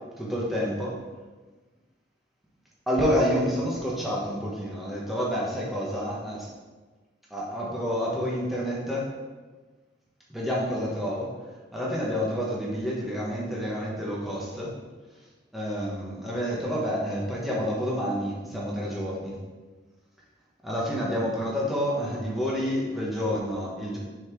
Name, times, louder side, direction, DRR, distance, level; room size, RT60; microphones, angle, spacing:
voice 1, 0.2-1.0 2.9-6.5 7.3-9.1 10.3-11.3 11.7-14.7 15.5-19.4 20.6-24.0, equal, ahead, -6 dB, 1.1 m, -28 dB
6.3 x 4.2 x 4.6 m, 1.3 s
head